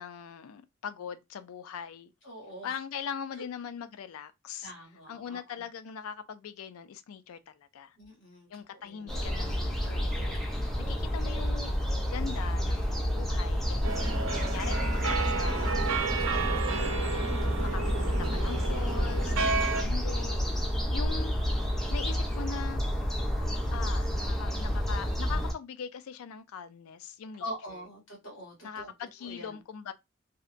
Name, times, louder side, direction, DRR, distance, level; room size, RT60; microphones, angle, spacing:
voice 1, 0.0-2.1 2.6-4.7 5.1-8.0 8.5-10.4 10.9-11.8 12.1-14.1 14.4-20.4 20.7-21.3 21.9-22.8 23.7-27.5 27.7-27.8 28.6-29.9, left 7 dB, 90° left, 0.4 m, -41 dB
voice 2, 2.2-2.8 4.6-5.6 8.0-9.1 27.4-28.9 29.2-29.6, equal, 65° left, 1.5 m, -44 dB
sound 1, 9.1-25.5, equal, ahead, 0.4 m, -30 dB
sound 2, 13.8-19.8, right 4 dB, 70° right, 0.6 m, -32 dB
2.7 x 2.1 x 2.4 m
head